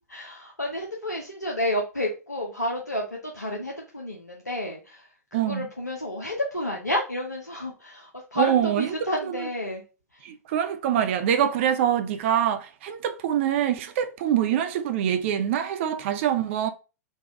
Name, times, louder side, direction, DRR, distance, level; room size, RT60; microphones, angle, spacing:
voice 1, 0.1-9.8 10.1-10.2, left 1 dB, 90° left, 0.8 m, -31 dB
voice 2, 5.3-5.7 8.4-9.5 10.2-16.7, right 9 dB, 45° right, 0.5 m, -25 dB
4.0 x 2.4 x 4.6 m
figure-of-eight pair, 100°, 9 cm